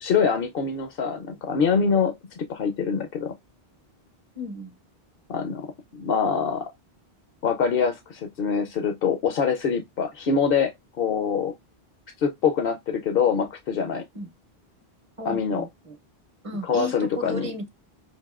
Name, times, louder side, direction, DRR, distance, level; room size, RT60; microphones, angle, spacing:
voice 1, 0.0-3.3 5.3-6.6 7.4-10.7 11.0-11.5 12.2-14.0 15.3-15.6 16.7-17.5, left 6 dB, 65° left, 0.8 m, -24 dB
voice 2, 4.4-4.7 14.1-14.3 15.2-16.0 16.4-17.7, equal, 35° right, 0.7 m, -34 dB
5.8 x 2.6 x 2.4 m
omnidirectional pair, 1.1 m